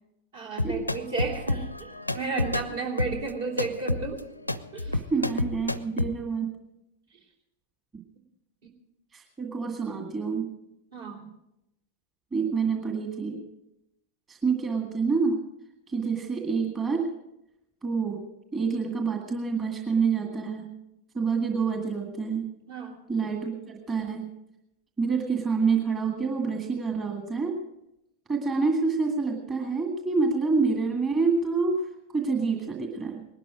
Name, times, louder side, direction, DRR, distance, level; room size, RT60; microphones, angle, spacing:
voice 1, 0.3-4.2 4.7-5.0 10.9-11.3 22.7-23.0, right 4 dB, 60° right, 2 dB, 3.3 m, -33 dB
sound 1, 0.6-6.1, left 2 dB, 85° left, 0.5 m, -30 dB
voice 2, 4.9-6.6 9.1-10.5 12.3-13.4 14.3-15.4 15.9-17.1 17.8-18.2 18.5-20.7 21.1-22.5 23.1-24.3 25.0-27.6 28.3-33.2, right 4 dB, 20° right, 2 dB, 1.9 m, -27 dB
19.5 x 12.0 x 5.0 m, 0.87 s
figure-of-eight pair, 90°, 0 cm